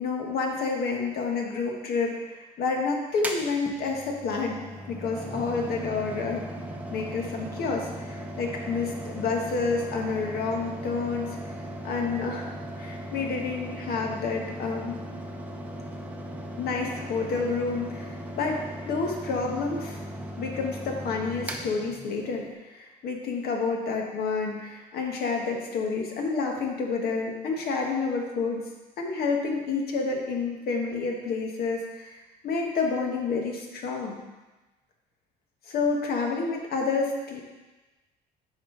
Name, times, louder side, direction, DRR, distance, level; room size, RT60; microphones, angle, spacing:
voice 1, 0.0-4.6 4.9-6.4 6.9-11.6 11.8-12.5 12.8-15.0 16.6-20.0 20.4-28.6 29.0-34.2 35.7-37.4, left 4 dB, 65° left, 1 dB, 1.4 m, -29 dB
Mechanical fan, 3.1-22.5, right 1 dB, 10° right, 0.7 m, -38 dB
10.0 x 3.8 x 3.8 m, 1.2 s
cardioid pair, 110°, 17 cm